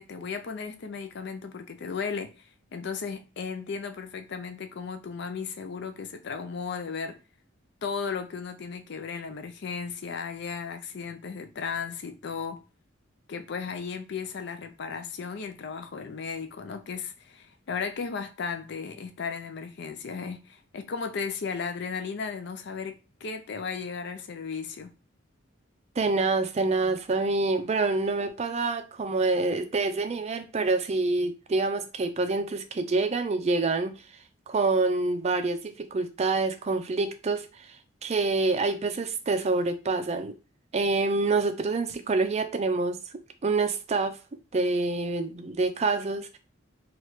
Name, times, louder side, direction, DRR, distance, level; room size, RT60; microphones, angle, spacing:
voice 1, 0.0-7.2 7.8-12.6 13.3-24.9, left 5 dB, 60° left, 0.4 m, -35 dB
voice 2, 26.0-33.9 34.5-37.8 38.0-40.3 40.7-43.0 43.4-44.2 44.5-46.4, right 3 dB, 35° right, 0.4 m, -26 dB
3.1 x 2.4 x 3.0 m
head